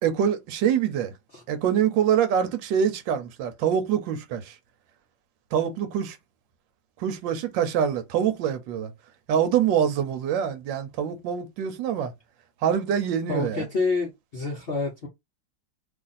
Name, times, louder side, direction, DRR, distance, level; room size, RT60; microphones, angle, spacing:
voice 1, 0.0-1.1 1.5-4.6 5.5-6.2 7.0-8.9 9.3-12.1 12.6-13.6, right 8 dB, 85° right, 1.3 m, -25 dB
voice 2, 13.3-15.1, left 3 dB, 55° left, 0.6 m, -28 dB
3.0 x 2.5 x 3.9 m
omnidirectional pair, 2.0 m